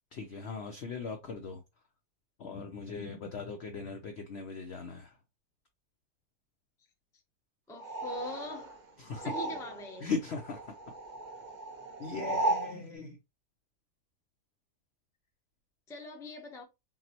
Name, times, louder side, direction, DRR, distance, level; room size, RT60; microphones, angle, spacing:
voice 1, 0.1-1.6 2.4-5.2 9.0-9.3 10.0-10.7 12.0-13.2, left 4 dB, 65° left, 0.6 m, -39 dB
voice 2, 7.7-8.8 9.2-10.1 15.9-16.6, left 2 dB, 5° left, 0.5 m, -42 dB
sound 1, 7.8-10.0 10.3-12.8, right 2 dB, 85° right, 0.4 m, -36 dB
5.8 x 2.1 x 2.8 m
omnidirectional pair, 1.8 m